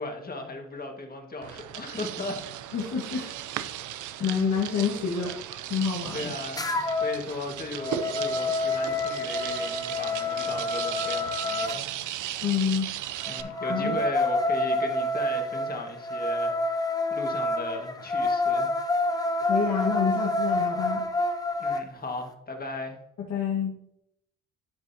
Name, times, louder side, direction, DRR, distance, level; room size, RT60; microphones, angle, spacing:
voice 1, 0.0-2.4 3.1-3.3 4.2-4.3 6.1-11.8 13.3-18.7 21.6-23.0, left 2 dB, 30° left, 3 dB, 1.7 m, -37 dB
sound 1, 1.4-13.4, right 12 dB, 75° right, 0.6 m, -36 dB
voice 2, 2.7-3.3 4.2-5.4 5.7-6.3 12.4-12.9 13.3-14.0 19.4-21.0 23.2-23.7, left 6 dB, 65° left, -3 dB, 1.6 m, -28 dB
sound 2, 6.6-7.2 7.6-11.8 13.2-21.8, left 2 dB, 10° left, 0.8 m, -28 dB
12.0 x 5.2 x 2.8 m, 0.79 s
cardioid pair, 85°, 31 cm